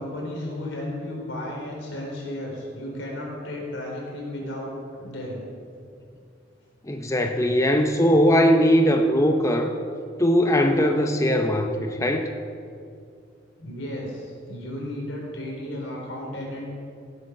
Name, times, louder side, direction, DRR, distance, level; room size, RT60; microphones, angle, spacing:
voice 1, 0.0-4.7 5.0-5.4 13.6-16.7, left 1 dB, 80° left, -2 dB, 4.3 m, -34 dB
voice 2, 6.9-9.7 10.2-12.3, equal, 15° left, 4 dB, 0.6 m, -20 dB
17.0 x 8.6 x 6.6 m, 2.4 s
head